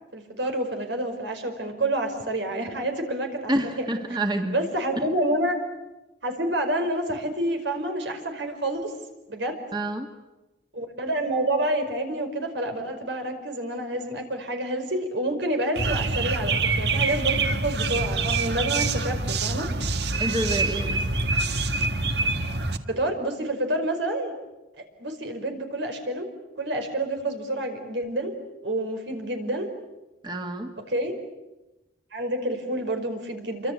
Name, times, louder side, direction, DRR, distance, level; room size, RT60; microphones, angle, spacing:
voice 1, 0.1-3.9 4.5-5.6 6.2-8.9 9.3-9.6 10.7-19.7 22.9-24.3 25.0-26.3 26.6-29.7 30.9-31.2 32.1-33.7, right 1 dB, 90° right, 5 dB, 5.1 m, -28 dB
voice 2, 3.5-4.6 5.0-5.1 9.7-10.1 20.2-21.1 30.2-30.7, right 1 dB, 25° right, 4 dB, 2.0 m, -28 dB
sound 1, 15.8-22.8, right 3 dB, 70° right, 1.7 m, -25 dB
28.0 x 25.0 x 8.4 m, 1.0 s
head